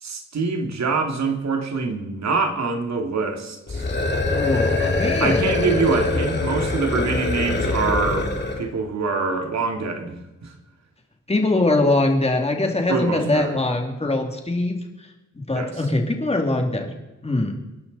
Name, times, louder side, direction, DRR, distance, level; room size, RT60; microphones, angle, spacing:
voice 1, 0.0-3.9 4.8-8.3 8.6-10.2 10.4-10.5 12.9-13.6 15.5-15.8, right 4 dB, 65° right, 4 dB, 2.4 m, -25 dB
sound 1, 3.7-8.7, left 2 dB, 35° left, 2.3 m, -23 dB
voice 2, 4.2-5.5 11.3-14.8 15.3-16.9 17.2-17.6, left 2 dB, 20° left, 2 dB, 2.5 m, -22 dB
27.5 x 11.5 x 4.1 m, 1.1 s
wide cardioid pair, 155°, 30 cm